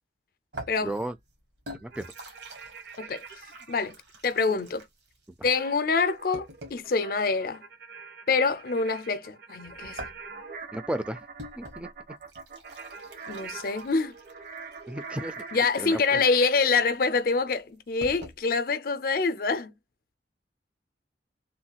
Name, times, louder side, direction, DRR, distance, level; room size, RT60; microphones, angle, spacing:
sound 1, 0.5-6.9 9.6-18.4, right 1 dB, 70° right, 1.2 m, -46 dB
voice 1, 0.8-1.2 1.8-2.1 10.7-11.2 11.6-11.9 14.9-15.4 15.8-16.2, right 1 dB, 5° right, 0.4 m, -34 dB
sound 2, 1.9-3.9 5.5-16.6, right 5 dB, 55° right, 0.7 m, -44 dB
voice 2, 4.2-4.8 5.4-7.6 8.3-10.1 13.3-14.2 15.5-19.7, left 4 dB, 55° left, 0.5 m, -26 dB
3.2 x 2.3 x 2.7 m
head